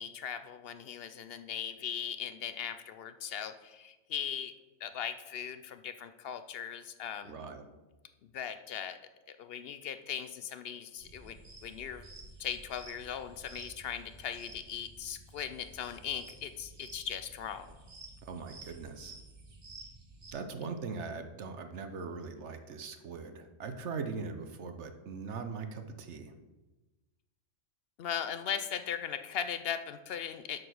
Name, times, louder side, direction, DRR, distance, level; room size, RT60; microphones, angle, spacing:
voice 1, 0.0-4.5 4.8-7.3 8.3-9.0 9.3-11.4 11.6-12.0 12.4-17.8 28.0-30.6, left 8 dB, 65° left, 10 dB, 0.6 m, -39 dB
voice 2, 7.2-7.7 18.2-19.2 20.3-26.3, right 4 dB, 60° right, 8 dB, 1.0 m, -40 dB
sound 1, 11.0-20.3, right 3 dB, 45° right, 1.5 m, -52 dB
7.6 x 5.2 x 6.2 m, 1.1 s
omnidirectional pair, 1.4 m